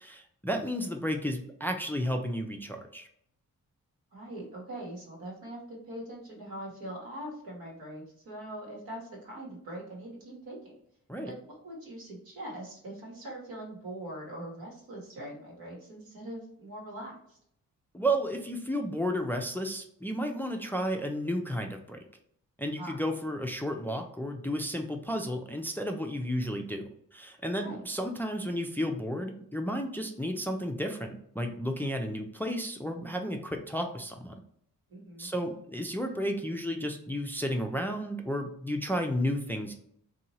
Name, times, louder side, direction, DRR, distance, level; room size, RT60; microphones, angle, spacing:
voice 1, 0.0-3.1 11.1-11.3 17.9-22.0 22.6-34.4 35.2-39.7, equal, 5° left, 4 dB, 0.4 m, -32 dB
voice 2, 4.1-10.8 11.2-17.4 22.8-23.0 27.6-27.8 34.9-35.3, right 1 dB, 80° right, -3 dB, 1.2 m, -42 dB
2.8 x 2.3 x 2.7 m, 0.69 s
supercardioid pair, 50°, 36 cm